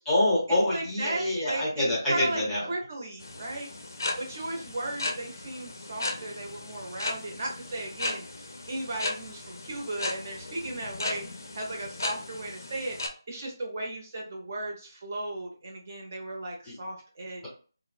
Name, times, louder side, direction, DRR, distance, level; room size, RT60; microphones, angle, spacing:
voice 1, 0.1-2.7 16.7-16.8, left 1 dB, 5° left, -7 dB, 0.8 m, -26 dB
voice 2, 0.7-2.4 2.7-3.7 4.2-13.0 13.3-17.5, right 2 dB, 30° right, -1 dB, 0.8 m, -36 dB
sound 1, 3.2-13.1, left 2 dB, 55° left, 0.5 m, -36 dB
3.0 x 2.0 x 2.4 m, 0.38 s
figure-of-eight pair, 170°, 2 cm